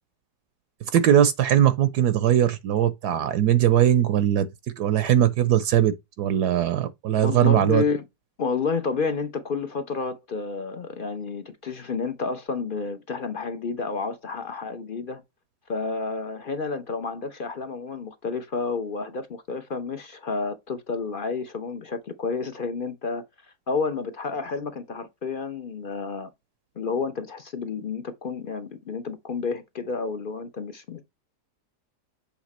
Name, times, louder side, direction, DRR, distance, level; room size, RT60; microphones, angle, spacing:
voice 1, 0.8-4.5 4.8-7.8, right 11 dB, 75° right, 1.2 m, -20 dB
voice 2, 7.2-8.0 8.4-15.2 15.7-23.2 23.7-26.3 26.8-31.0, left 4 dB, 50° left, 0.6 m, -30 dB
7.3 x 3.5 x 4.1 m
omnidirectional pair, 1.8 m